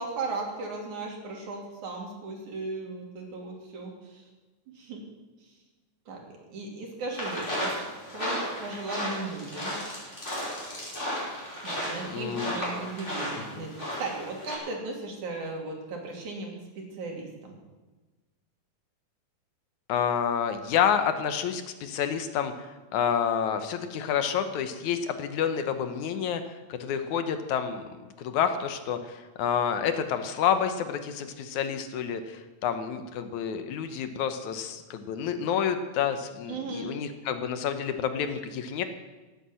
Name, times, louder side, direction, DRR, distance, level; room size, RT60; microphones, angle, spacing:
voice 1, 0.0-4.3 4.8-5.0 5.4-5.6 6.1-7.7 8.1-9.8 11.6-17.6 36.5-36.9, right 3 dB, 75° right, 1 dB, 4.1 m, -36 dB
sound 1, 7.1-14.6, equal, 20° left, 5.5 m, -34 dB
voice 2, 12.1-12.6 13.6-13.7 19.9-38.8, left 8 dB, 75° left, 9 dB, 2.4 m, -29 dB
17.5 x 8.5 x 7.6 m, 1.2 s
omnidirectional pair, 3.5 m